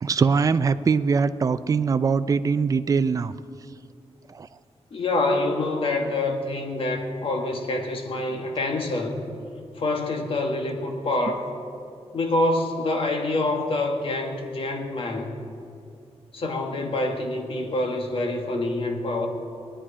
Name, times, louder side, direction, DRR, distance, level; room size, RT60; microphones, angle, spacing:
voice 1, 0.0-3.3 4.4-4.5, right 5 dB, 30° right, 13 dB, 0.4 m, -22 dB
voice 2, 4.9-9.2 9.8-11.4 12.1-15.4 16.3-19.3, left 2 dB, 50° left, 3 dB, 1.6 m, -26 dB
21.0 x 10.0 x 5.0 m, 2.4 s
wide cardioid pair, 140°, 12 cm